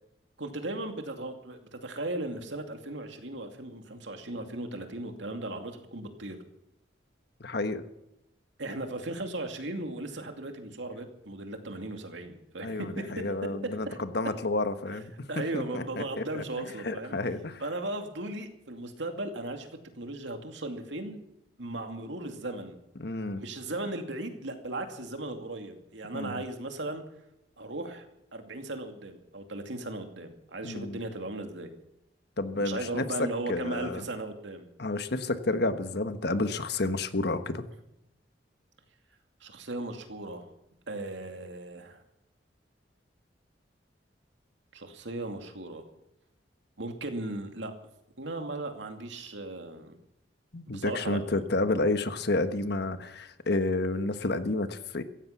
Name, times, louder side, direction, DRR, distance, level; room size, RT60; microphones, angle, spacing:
voice 1, 0.4-6.4 8.6-14.0 15.3-17.2 17.6-21.2 21.6-22.8 23.4-27.0 27.6-28.1 28.3-31.7 32.6-34.7 39.4-40.4 40.9-42.0 44.7-45.8 46.8-47.7 48.2-50.0 50.7-51.4, right 2 dB, 85° right, 5 dB, 2.5 m, -37 dB
voice 2, 7.4-7.8 12.6-15.1 15.5-16.4 16.8-17.6 23.0-23.4 26.1-26.4 30.6-31.0 32.4-33.0 33.5-34.0 34.8-37.7 50.5-55.0, left 2 dB, 65° left, 9 dB, 1.3 m, -30 dB
16.0 x 15.5 x 5.9 m, 0.87 s
head